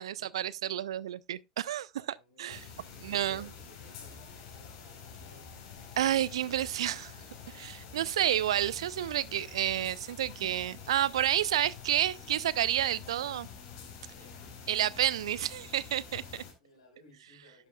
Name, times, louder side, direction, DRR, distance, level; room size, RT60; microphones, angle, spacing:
voice 1, 0.0-2.6 3.0-3.5 6.0-7.1 7.5-13.5 14.7-16.4, right 11 dB, 70° right, 0.5 m, -30 dB
voice 2, 2.0-5.9 14.1-14.5 16.6-17.7, left 1 dB, 80° left, 4.7 m, -60 dB
sound 1, 2.5-16.5, left 6 dB, 55° left, 4.0 m, -48 dB
11.5 x 9.1 x 2.3 m
figure-of-eight pair, 75°, 3 cm